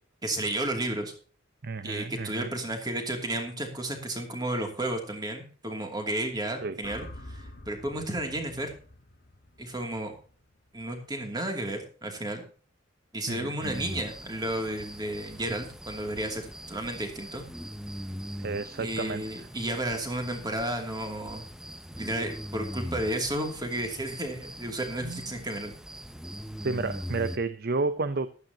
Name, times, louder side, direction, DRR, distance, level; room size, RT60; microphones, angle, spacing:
voice 1, 0.2-1.1 1.8-8.7 9.6-10.1 10.7-12.4 13.1-17.4 18.8-21.5 22.0-25.7, right 1 dB, 20° right, 3 dB, 2.6 m, -32 dB
voice 2, 1.6-2.5 6.6-6.8 13.3-13.8 18.4-19.2 25.0-25.2 26.6-28.3, right 3 dB, 50° right, 13 dB, 0.7 m, -31 dB
sound 1, 6.8-11.0, left 1 dB, 50° left, 1.3 m, -47 dB
sound 2, 13.6-27.4, equal, 5° right, 0.6 m, -41 dB
15.0 x 12.0 x 2.9 m, 0.41 s
head